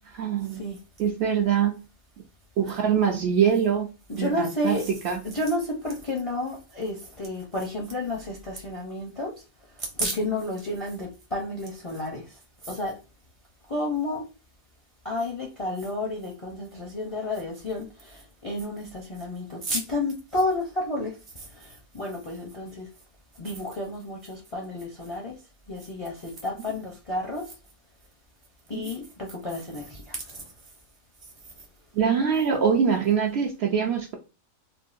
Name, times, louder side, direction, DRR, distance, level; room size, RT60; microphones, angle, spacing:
voice 1, 0.1-0.7 1.0-1.8 2.6-5.2 28.7-28.9 31.9-34.1, right 7 dB, 65° right, 0.7 m, -24 dB
voice 2, 4.1-4.9 5.2-9.4 9.9-12.3 12.6-13.0 13.7-14.2 15.0-22.9 23.4-25.4 25.7-27.5 28.7-30.4, left 1 dB, 40° left, 0.4 m, -31 dB
3.6 x 2.2 x 2.5 m
omnidirectional pair, 1.4 m